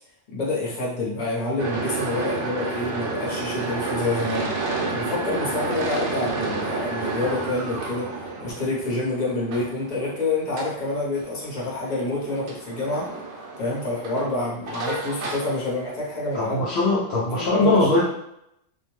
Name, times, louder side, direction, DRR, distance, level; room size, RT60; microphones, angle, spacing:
voice 1, 0.3-4.5 4.9-8.1 8.4-13.1 13.6-16.6 17.5-18.0, left 2 dB, 40° left, -5 dB, 0.9 m, -27 dB
sound 1, 1.6-16.3, right 3 dB, 80° right, 0.9 m, -31 dB
voice 2, 16.3-18.0, left 2 dB, 65° left, -6 dB, 0.8 m, -21 dB
2.5 x 2.2 x 3.0 m, 0.78 s
omnidirectional pair, 1.2 m